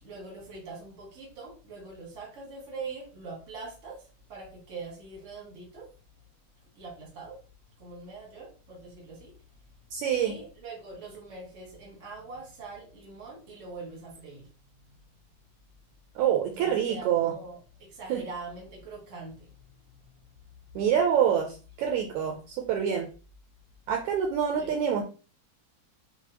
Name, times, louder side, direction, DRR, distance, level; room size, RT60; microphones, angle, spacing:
voice 1, 0.0-5.9 6.7-7.4 7.8-9.4 10.1-14.5 16.5-19.5 24.6-24.7, right 3 dB, 50° right, -2 dB, 0.9 m, -43 dB
voice 2, 9.9-10.3 16.1-17.3 18.1-18.2 20.7-23.1 23.9-25.0, right 8 dB, 80° right, 3 dB, 1.7 m, -26 dB
5.7 x 2.0 x 2.9 m, 0.34 s
omnidirectional pair, 3.7 m